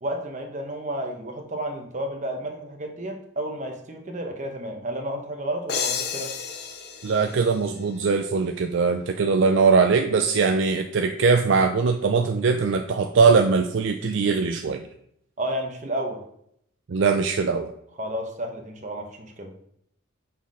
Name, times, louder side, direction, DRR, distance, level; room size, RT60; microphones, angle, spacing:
voice 1, 0.0-6.4 15.4-16.2 18.0-19.5, right 1 dB, 35° right, 3 dB, 1.0 m, -31 dB
sound 1, 5.7-8.4, left 6 dB, 50° left, 0.7 m, -32 dB
voice 2, 7.0-14.8 16.9-17.7, right 4 dB, 60° right, 5 dB, 0.4 m, -21 dB
6.0 x 4.2 x 4.8 m, 0.71 s
head